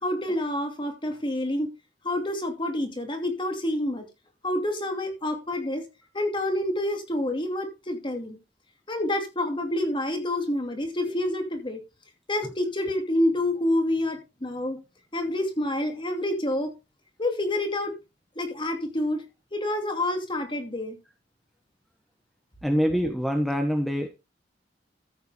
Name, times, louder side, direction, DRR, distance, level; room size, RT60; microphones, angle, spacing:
voice 1, 0.0-1.7 2.0-4.0 4.4-5.9 6.1-8.4 8.9-11.8 12.3-14.8 15.1-16.7 17.2-17.9 18.4-19.2 19.5-21.0, left 1 dB, 30° left, 4 dB, 2.7 m, -28 dB
voice 2, 22.6-24.1, equal, ahead, 4 dB, 1.4 m, -25 dB
14.0 x 8.1 x 3.5 m, 0.26 s
head